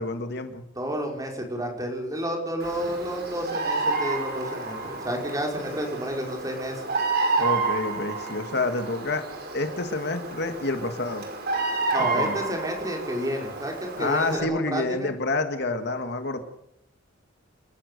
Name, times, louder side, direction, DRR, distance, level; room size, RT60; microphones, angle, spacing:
voice 1, 0.0-0.6 7.4-9.2 9.5-11.2 12.0-12.4 14.0-16.4, left 2 dB, 55° left, 7 dB, 2.1 m, -28 dB
voice 2, 0.8-6.8 11.9-15.1, equal, 20° right, 1 dB, 5.2 m, -30 dB
Bird vocalization bird call bird song, 2.6-14.4, right 3 dB, 55° right, 5.4 m, -30 dB
29.0 x 15.0 x 6.9 m, 0.76 s
head